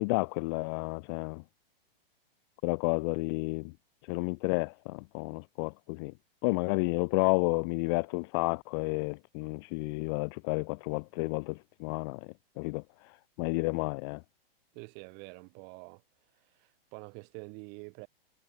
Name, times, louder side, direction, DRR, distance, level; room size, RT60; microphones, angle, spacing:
voice 1, 0.0-1.4 2.6-3.7 4.1-6.1 6.4-12.3 12.6-12.8 13.4-14.2, left 30 dB, 25° left, 0.6 m, -31 dB
voice 2, 14.7-16.0 16.4-18.1, right 35 dB, 35° right, 5.8 m, -47 dB
hypercardioid pair, 155°, 30 cm